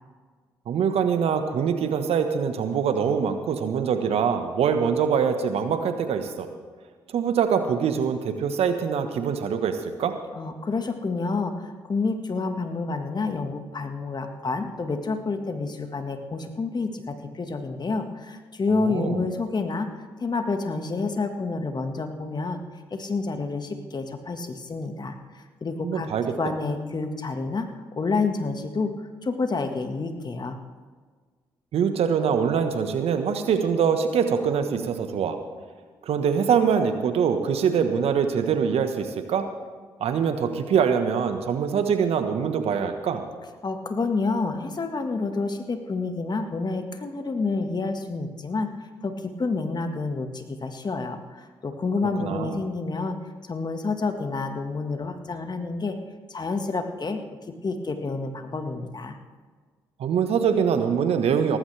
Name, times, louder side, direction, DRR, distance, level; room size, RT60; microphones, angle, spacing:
voice 1, 0.7-6.5 7.1-10.1 18.8-19.2 25.8-26.2 31.7-35.4 36.1-39.5 40.0-43.2 52.2-52.5 60.0-61.6, right 7 dB, 70° right, 8 dB, 1.3 m, -24 dB
voice 2, 10.3-19.9 20.2-22.6 22.9-26.1 26.4-28.9 29.2-30.6 43.6-48.7 49.0-53.1 53.5-56.0 56.3-57.2 57.6-59.2, left 3 dB, 40° left, 6 dB, 1.7 m, -29 dB
18.0 x 15.5 x 3.4 m, 1.5 s
hypercardioid pair, 45°, 11 cm